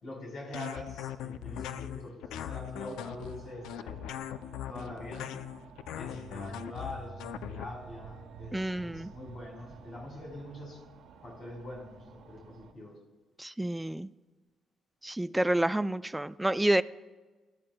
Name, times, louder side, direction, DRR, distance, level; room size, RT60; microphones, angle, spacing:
voice 1, 0.0-4.0 4.7-5.4 5.9-10.8 11.2-13.0, left 1 dB, 60° left, -1 dB, 4.5 m, -44 dB
sound 1, 0.5-7.6, left 11 dB, 90° left, 0.4 m, -40 dB
sound 2, 2.6-12.7, right 4 dB, 85° right, 1.1 m, -51 dB
voice 2, 8.5-9.1 13.4-14.1 15.0-16.8, right 1 dB, 10° right, 13 dB, 0.3 m, -29 dB
20.5 x 12.0 x 2.2 m, 1.3 s
cardioid pair, 90°, 0 cm